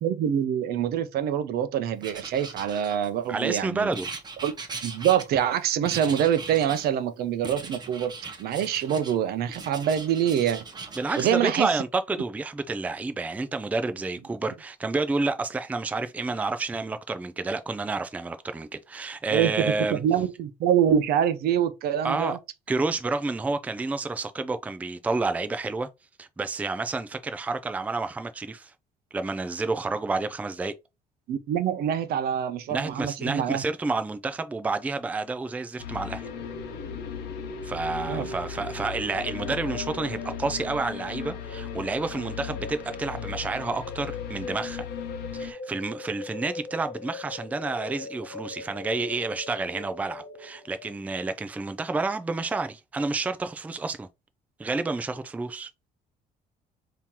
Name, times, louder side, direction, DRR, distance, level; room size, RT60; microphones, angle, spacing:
voice 1, 0.0-3.9 4.4-4.5 4.8-8.1 8.4-10.6 11.2-11.8 19.3-22.4 31.3-33.6 38.1-38.3, right 9 dB, 70° right, 0.6 m, -25 dB
Writing, 2.0-3.3 3.9-5.6 5.9-6.9 7.4-9.2 9.5-11.3, right 4 dB, 25° right, 0.8 m, -39 dB
voice 2, 3.3-4.1 11.0-20.0 22.0-22.4 22.7-25.9 26.2-28.7 29.1-30.7 32.7-36.3 37.6-44.8 45.3-54.1 54.6-55.7, right 3 dB, 10° right, 0.3 m, -29 dB
sound 1, 35.8-45.5, left 10 dB, 85° left, 0.9 m, -38 dB
sound 2, 36.2-50.9, left 2 dB, 50° left, 1.0 m, -40 dB
3.7 x 2.9 x 2.8 m
cardioid pair, 110°, 17 cm